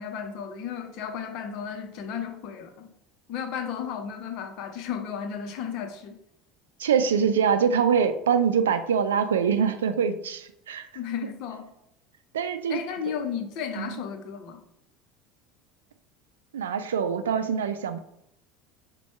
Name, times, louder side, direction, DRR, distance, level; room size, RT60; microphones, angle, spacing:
voice 1, 0.0-2.9 3.3-6.2 10.9-11.7 12.7-14.6, left 7 dB, 60° left, 6 dB, 0.7 m, -34 dB
voice 2, 6.8-10.9 12.3-12.8 13.8-14.0 16.5-18.0, right 7 dB, 85° right, 10 dB, 0.3 m, -24 dB
4.2 x 2.2 x 4.6 m, 0.79 s
hypercardioid pair, 80°, 0 cm